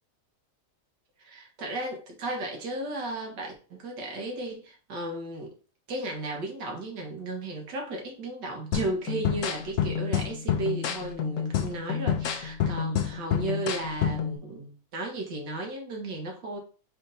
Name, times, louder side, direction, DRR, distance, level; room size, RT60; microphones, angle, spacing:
voice 1, 1.2-5.6 5.9-16.6, right 2 dB, 85° right, 2.0 m, -34 dB
sound 1, 8.7-14.4, left 9 dB, 65° left, 0.8 m, -29 dB
4.5 x 4.5 x 2.7 m
omnidirectional pair, 1.8 m